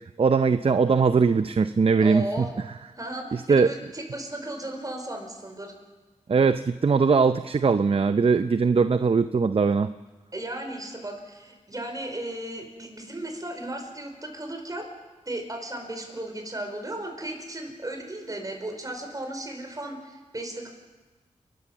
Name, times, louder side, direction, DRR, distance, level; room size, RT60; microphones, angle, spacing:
voice 1, 0.2-2.2 3.3-3.7 6.3-9.9, right 5 dB, 50° right, 11 dB, 0.6 m, -21 dB
voice 2, 2.0-2.5 2.9-5.7 10.3-14.9 15.2-20.7, right 1 dB, 30° right, 3 dB, 5.1 m, -35 dB
29.0 x 13.0 x 7.3 m, 1.3 s
wide cardioid pair, 65°, 13 cm